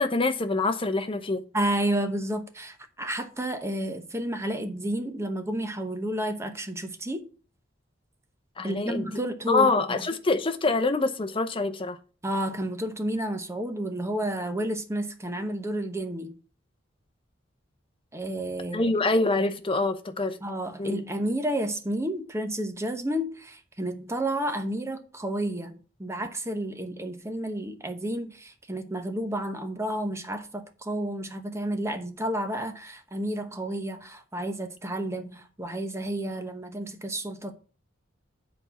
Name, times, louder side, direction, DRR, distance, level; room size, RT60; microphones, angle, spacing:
voice 1, 0.0-1.4 8.6-9.1 9.5-12.0 18.7-20.4 20.8-21.0, left 3 dB, 30° left, 0.8 m, -25 dB
voice 2, 1.5-7.2 8.6-10.0 12.2-16.3 18.1-18.9 20.4-37.5, right 1 dB, 15° right, 1.0 m, -31 dB
8.0 x 4.3 x 7.0 m
head